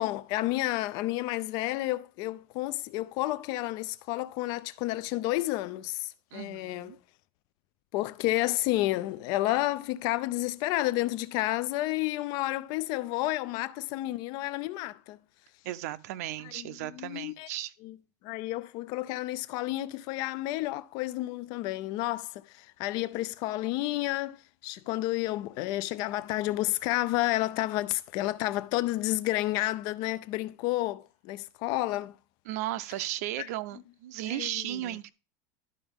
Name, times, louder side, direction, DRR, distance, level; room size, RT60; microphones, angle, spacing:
voice 1, 0.0-7.0 7.9-15.2 16.4-17.5 17.8-18.0 18.2-32.1 33.4-33.5 34.2-35.0, left 17 dB, 55° left, 0.5 m, -31 dB
voice 2, 6.3-7.0 15.6-17.7 32.5-35.1, right 14 dB, 75° right, 0.6 m, -35 dB
12.0 x 4.8 x 3.6 m
supercardioid pair, 145°, 9 cm